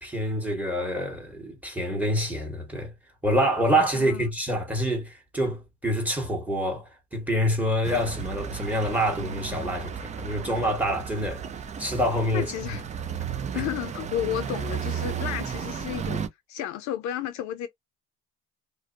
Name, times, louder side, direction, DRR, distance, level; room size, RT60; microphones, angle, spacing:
voice 1, 0.0-2.9 3.2-11.4 11.8-12.8 13.5-13.6, equal, 5° right, 1.3 m, -27 dB
voice 2, 3.9-4.3 12.3-12.8 13.5-16.2 16.5-17.7, left 11 dB, 60° left, 0.6 m, -32 dB
sound 1, 7.8-16.3, right 7 dB, 25° right, 0.4 m, -34 dB
2.5 x 2.1 x 2.5 m
supercardioid pair, 90°, 32 cm